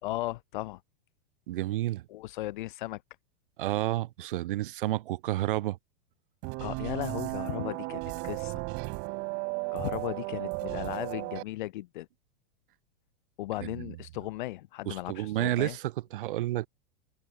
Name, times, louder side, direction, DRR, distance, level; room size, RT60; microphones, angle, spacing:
voice 1, 0.0-0.8 2.1-3.0 6.6-8.6 9.7-12.1 13.4-15.8, left 17 dB, 55° left, 3.0 m, -36 dB
voice 2, 1.5-2.1 3.6-5.8 13.6-14.0 14.9-16.7, right 15 dB, 65° right, 2.1 m, -30 dB
sound 1, 6.4-11.4, right 34 dB, 35° right, 3.3 m, -35 dB
supercardioid pair, 165°, 29 cm